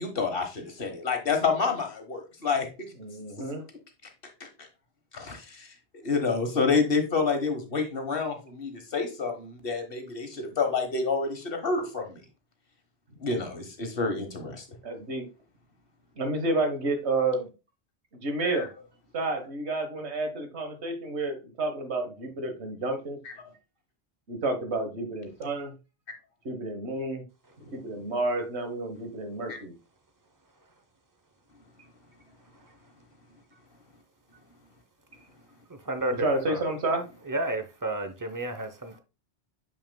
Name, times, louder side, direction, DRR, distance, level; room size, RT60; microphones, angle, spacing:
voice 1, 0.0-2.9 4.4-4.7 5.1-5.7 6.0-12.2 13.2-14.6 18.4-18.7 23.2-23.3 29.5-29.6, left 4 dB, 55° left, 1.4 m, -28 dB
voice 2, 3.0-3.6 14.8-15.3 16.2-17.5 18.1-18.7 19.1-23.2 24.3-25.7 26.4-27.2 27.6-29.7 36.2-37.0, right 2 dB, 70° right, 1.6 m, -30 dB
voice 3, 35.7-36.6 37.2-39.0, right 1 dB, 20° right, 0.6 m, -32 dB
6.8 x 6.2 x 2.2 m
omnidirectional pair, 1.2 m